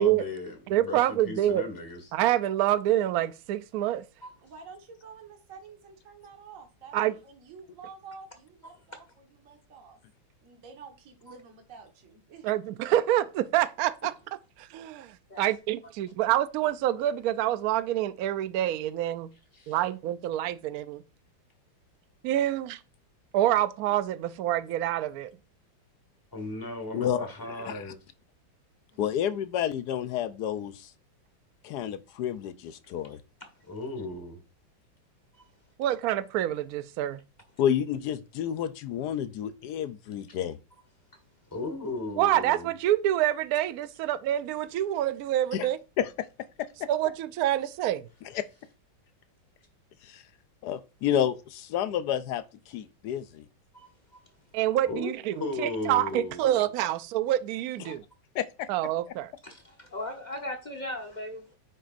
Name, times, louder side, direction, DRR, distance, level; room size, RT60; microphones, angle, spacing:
voice 1, 0.0-2.0 19.5-19.8 26.3-28.0 33.7-34.4 41.5-42.7 54.9-56.6, left 2 dB, 10° left, 1.4 m, -36 dB
voice 2, 0.7-1.6 2.1-4.0 6.9-7.1 12.4-14.1 14.6-19.3 19.7-21.0 22.2-22.8 23.3-25.3 35.8-37.2 42.2-45.8 46.9-48.1 54.5-58.0 58.7-59.3, right 13 dB, 90° right, 0.7 m, -27 dB
voice 3, 4.4-9.0 9.4-10.0 10.4-12.5, right 5 dB, 45° right, 1.7 m, -49 dB
voice 4, 26.9-27.3 27.7-27.8 29.0-30.9 31.6-33.2 37.6-40.6 45.5-45.7 46.0-46.1 46.6-46.9 48.3-48.5 50.0-50.2 50.6-53.5 57.8-58.0 58.3-58.7, left 10 dB, 75° left, 1.0 m, -30 dB
voice 5, 53.7-54.2 59.4-61.6, left 1 dB, 30° left, 0.9 m, -38 dB
9.3 x 6.5 x 2.5 m
omnidirectional pair, 2.1 m